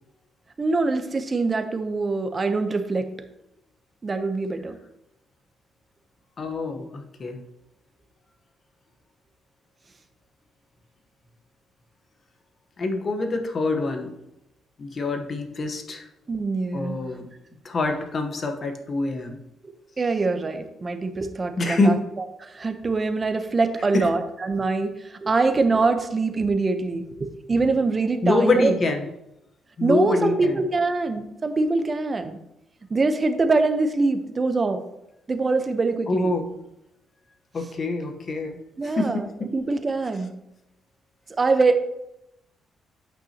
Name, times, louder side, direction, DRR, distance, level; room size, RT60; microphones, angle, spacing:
voice 1, 0.6-3.1 4.0-4.8 16.3-17.0 19.6-22.0 22.4-28.7 29.8-32.4 32.9-34.8 35.3-36.3 38.8-40.3 41.4-41.8, right 3 dB, 30° right, 7 dB, 0.8 m, -24 dB
voice 2, 6.4-7.4 12.8-14.1 14.8-16.1 16.7-17.3 17.6-19.4 21.6-22.0 23.9-24.1 28.2-29.0 29.8-30.6 36.1-36.5 37.5-38.6 38.8-39.5, left 2 dB, 45° left, 5 dB, 1.1 m, -25 dB
8.9 x 5.6 x 2.9 m, 0.87 s
cardioid pair, 90°, 0 cm